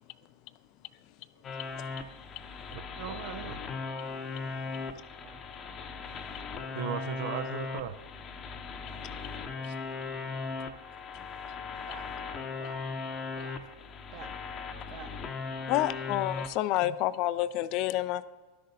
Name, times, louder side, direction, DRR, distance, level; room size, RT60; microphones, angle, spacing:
sound 1, 1.4-16.5, left 4 dB, 30° left, 0.7 m, -38 dB
voice 1, 2.7-3.6 6.7-8.0 9.6-9.7, right 9 dB, 65° right, 10 dB, 0.5 m, -37 dB
voice 2, 6.5-7.4 9.2-10.4 11.9-12.2 12.6-12.9 13.4-13.6 14.1-14.4 14.9-15.3 15.7-15.9, right 8 dB, 45° right, 7 dB, 1.0 m, -51 dB
voice 3, 15.7-18.2, left 14 dB, 50° left, 15 dB, 0.3 m, -28 dB
12.0 x 6.4 x 2.8 m, 1.4 s
hypercardioid pair, 90°, 0 cm